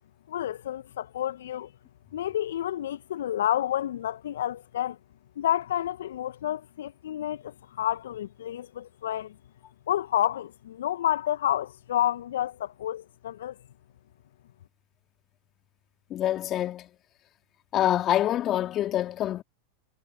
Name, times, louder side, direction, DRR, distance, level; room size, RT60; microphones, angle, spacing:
voice 1, 0.3-1.7 2.1-5.0 5.4-9.3 9.9-13.5, left 11 dB, 65° left, 1.8 m, -29 dB
voice 2, 16.1-16.9 17.7-19.4, left 12 dB, 35° left, 3.4 m, -26 dB
figure-of-eight pair, 90°, 0 cm